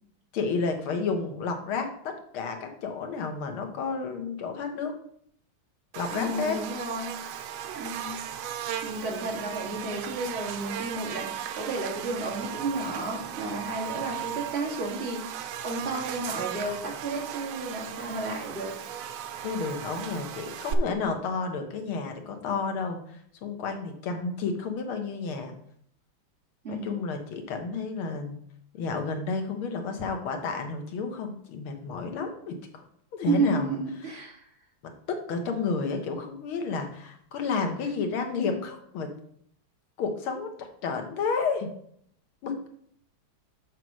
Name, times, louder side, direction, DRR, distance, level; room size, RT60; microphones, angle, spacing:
voice 1, 0.3-4.9 6.0-6.6 19.4-25.5 26.7-28.4 28.7-32.8 33.1-34.3 34.8-39.1 40.0-41.7 42.4-42.7, left 4 dB, 90° left, 5 dB, 2.0 m, -31 dB
Buzz, 5.9-20.7, right 10 dB, 85° right, 1.6 m, -37 dB
voice 2, 6.1-7.2 7.8-8.2 8.8-18.8 26.6-27.0 33.3-34.5, right 3 dB, 30° right, -3 dB, 2.2 m, -32 dB
6.8 x 4.6 x 6.2 m, 0.66 s
omnidirectional pair, 2.3 m